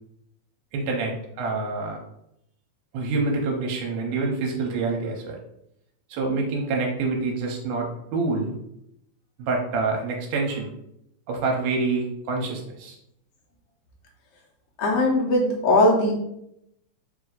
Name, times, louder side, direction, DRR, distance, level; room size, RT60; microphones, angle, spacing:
voice 1, 0.7-2.0 2.9-5.4 6.1-8.5 9.4-10.7 11.3-13.0, right 3 dB, 80° right, 1 dB, 2.2 m, -26 dB
voice 2, 14.8-16.1, left 2 dB, 70° left, -1 dB, 1.7 m, -19 dB
4.8 x 2.6 x 3.8 m, 0.78 s
omnidirectional pair, 3.6 m